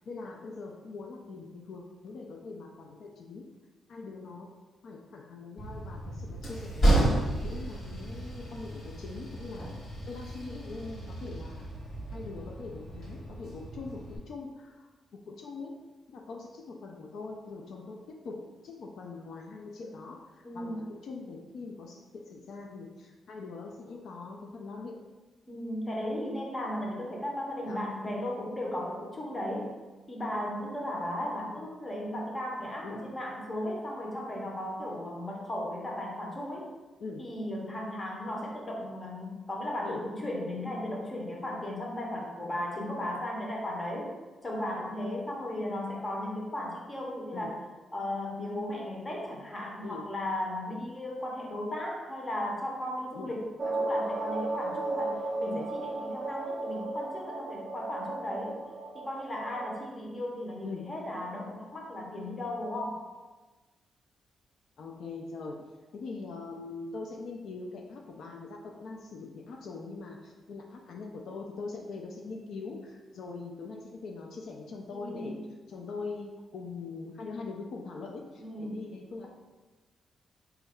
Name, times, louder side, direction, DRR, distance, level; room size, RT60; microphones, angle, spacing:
voice 1, 0.1-3.5 3.9-4.5 4.8-7.1 7.4-9.7 10.1-11.7 12.1-15.8 16.1-25.0 27.7-27.9 32.8-33.1 37.0-37.3 39.8-40.0 47.3-47.5 49.8-50.1 53.1-53.3 55.5-55.7 60.6-60.9 64.8-65.7 65.9-79.3, left 3 dB, 65° left, 1 dB, 0.3 m, -42 dB
Train, 5.6-14.2, right 1 dB, 45° left, 1.0 m, -32 dB
voice 2, 20.4-20.9 25.5-29.7 30.1-36.7 37.2-44.2 44.4-47.6 47.9-58.6 58.9-63.0 74.9-75.4 78.4-79.0, left 1 dB, 20° left, -1 dB, 0.7 m, -36 dB
sound 1, 53.6-59.8, right 2 dB, 20° right, 0.3 m, -35 dB
4.0 x 2.3 x 3.5 m, 1.2 s
wide cardioid pair, 155°, 0 cm